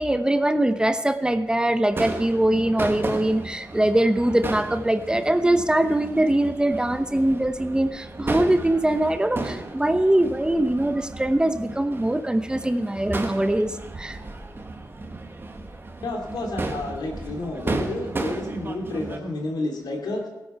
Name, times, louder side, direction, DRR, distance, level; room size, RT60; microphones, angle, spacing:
voice 1, 0.0-14.2, right 1 dB, 10° right, 9 dB, 0.8 m, -22 dB
Crowd / Fireworks, 1.9-19.2, right 2 dB, 35° right, 1.6 m, -34 dB
voice 2, 16.0-20.3, left 2 dB, 85° left, 2 dB, 3.0 m, -30 dB
17.5 x 9.4 x 5.7 m, 1.1 s
cardioid pair, 85°, 7 cm